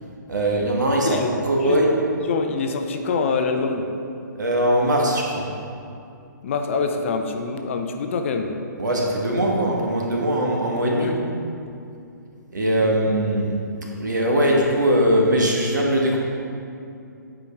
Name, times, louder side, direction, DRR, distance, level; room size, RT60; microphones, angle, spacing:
voice 1, 0.3-1.9 4.4-5.5 8.8-11.1 12.5-13.5 14.0-16.2, right 1 dB, 65° right, -1 dB, 1.6 m, -21 dB
voice 2, 2.3-3.9 6.4-8.5 11.0-11.1 12.8-12.9, left 4 dB, 40° left, 5 dB, 0.6 m, -25 dB
10.0 x 5.1 x 3.5 m, 2.6 s
figure-of-eight pair, 130°, 10 cm